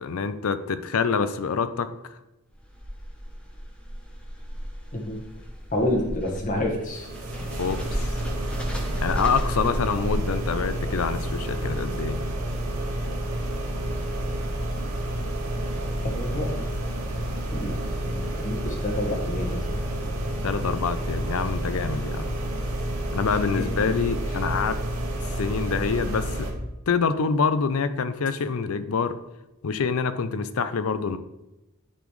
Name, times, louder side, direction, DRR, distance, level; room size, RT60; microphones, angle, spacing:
voice 1, 0.0-1.9 7.6-8.1 9.0-12.2 20.4-22.4 23.1-24.8 25.4-26.4 26.9-29.1 29.6-31.2, left 5 dB, 70° left, 12 dB, 0.5 m, -26 dB
sound 1, 2.5-10.8, equal, 5° left, 0.8 m, -35 dB
voice 2, 5.7-7.1 16.1-16.7 17.5-17.8 18.1-19.6 23.5-23.8, left 1 dB, 35° left, 0 dB, 1.4 m, -28 dB
sound 2, 6.9-26.5, right 1 dB, 85° right, 1.8 m, -29 dB
10.0 x 4.2 x 3.2 m, 0.98 s
head